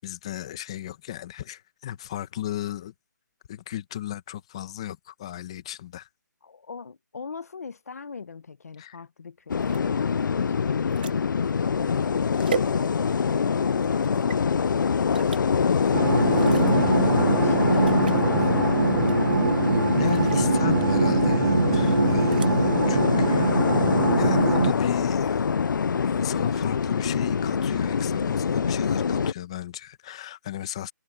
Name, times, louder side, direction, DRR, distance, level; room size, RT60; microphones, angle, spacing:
voice 1, 0.0-2.9 3.5-6.1 8.8-9.0 20.0-23.6 24.2-25.5 26.0-30.9, left 12 dB, 15° left, 1.1 m, -35 dB
voice 2, 6.4-16.4 16.8-19.2, left 5 dB, 50° left, 1.1 m, -42 dB
sound 1, 9.5-29.3, left 6 dB, 75° left, 0.4 m, -24 dB
sound 2, 9.6-13.3 13.8-14.4 15.1-15.4 16.3-16.9 17.3-17.4 17.7-18.3 19.0-19.5 20.0-20.5 22.1-22.5, right 7 dB, 25° right, 0.8 m, -38 dB
sound 3, 15.9-24.7, right 5 dB, 65° right, 0.9 m, -23 dB
hypercardioid pair, 180°, 10 cm